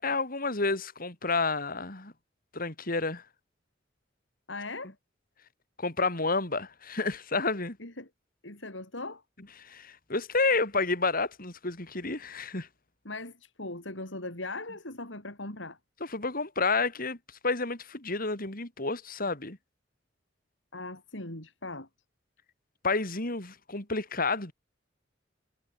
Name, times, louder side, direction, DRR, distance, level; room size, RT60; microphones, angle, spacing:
voice 1, 0.0-2.1 2.5-3.2 5.8-7.8 9.6-12.7 16.0-17.2 17.4-19.6 22.8-24.5, left 3 dB, 50° left, 4.1 m, -30 dB
voice 2, 4.5-4.9 7.8-8.1 8.4-9.2 13.0-15.8 20.7-21.9, left 2 dB, 75° left, 6.7 m, -39 dB
head